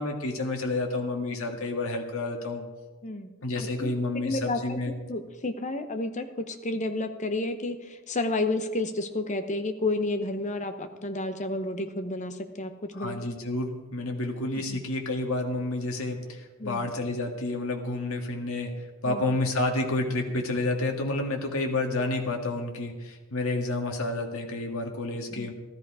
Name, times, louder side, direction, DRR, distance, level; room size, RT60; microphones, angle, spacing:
voice 1, 0.0-2.7 3.4-4.9 13.0-25.5, left 2 dB, 75° left, 2 dB, 1.9 m, -30 dB
voice 2, 3.5-3.9 4.2-4.8 5.1-13.2 14.5-14.8 16.6-16.9 19.0-19.4 25.3-25.5, left 2 dB, 35° left, 8 dB, 0.9 m, -31 dB
14.0 x 13.5 x 4.9 m, 1.2 s
head